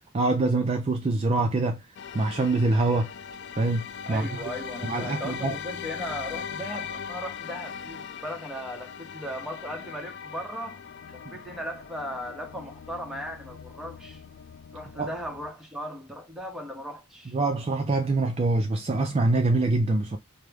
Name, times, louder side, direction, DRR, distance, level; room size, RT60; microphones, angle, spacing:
voice 1, 0.1-1.8 2.1-3.1 3.6-4.3 4.8-5.5 15.0-15.1 17.3-20.2, right 2 dB, 30° right, 0.4 m, -24 dB
sound 1, 1.9-15.5, left 7 dB, 55° left, 0.3 m, -40 dB
voice 2, 4.1-10.8 11.1-14.2 14.7-17.4, equal, ahead, 0.7 m, -37 dB
4.8 x 2.0 x 3.3 m
head